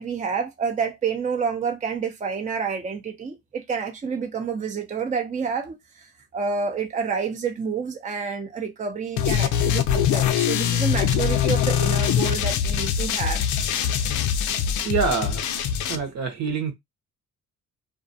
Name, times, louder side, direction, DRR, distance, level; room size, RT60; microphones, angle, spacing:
voice 1, 0.0-13.4, right 5 dB, 25° right, 0.5 m, -29 dB
sound 1, 9.2-16.0, left 9 dB, 80° left, 0.5 m, -23 dB
voice 2, 14.8-15.4 15.9-16.7, right 5 dB, 65° right, 0.9 m, -25 dB
2.3 x 2.3 x 2.6 m
cardioid pair, 90°, 30 cm